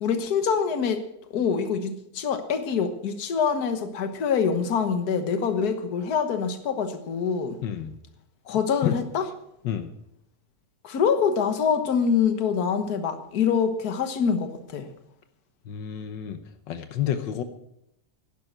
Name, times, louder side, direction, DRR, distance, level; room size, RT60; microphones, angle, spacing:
voice 1, 0.0-1.0 1.3-7.6 8.5-9.2 10.8-14.9, left 6 dB, 60° left, 9 dB, 1.7 m, -25 dB
voice 2, 7.6-7.9 8.8-9.0 9.6-9.9 15.7-16.4 16.7-17.4, left 10 dB, 85° left, 9 dB, 1.6 m, -29 dB
11.0 x 11.0 x 7.9 m, 0.79 s
omnidirectional pair, 1.9 m